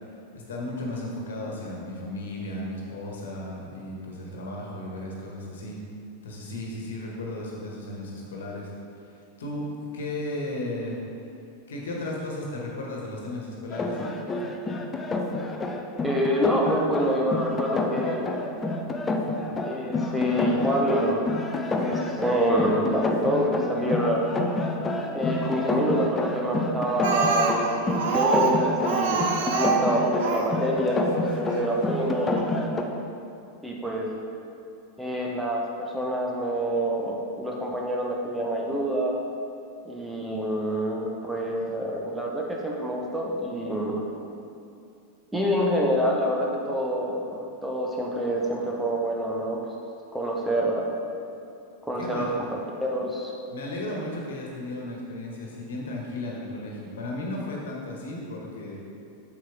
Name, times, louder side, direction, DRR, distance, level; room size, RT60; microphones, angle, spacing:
voice 1, 0.3-5.8 6.2-8.7 9.4-9.7 9.9-11.0 11.7-14.0 52.0-52.5 53.5-58.8, left 1 dB, 60° left, -2 dB, 1.5 m, -34 dB
sound 1, 13.7-32.8, left 2 dB, 15° left, 0.6 m, -29 dB
voice 2, 16.0-18.2 19.6-21.3 21.8-24.2 25.1-29.3 29.6-32.4 33.6-34.1 35.0-39.2 39.8-44.0 45.3-49.6 50.1-50.9 51.8-53.4, equal, 5° right, -2 dB, 1.0 m, -27 dB
Speech, 27.0-30.6 31.5-31.6 32.0-32.1 32.4-32.5, right 5 dB, 55° right, 0.7 m, -25 dB
7.6 x 6.9 x 3.6 m, 2.6 s
figure-of-eight pair, 90°, 0 cm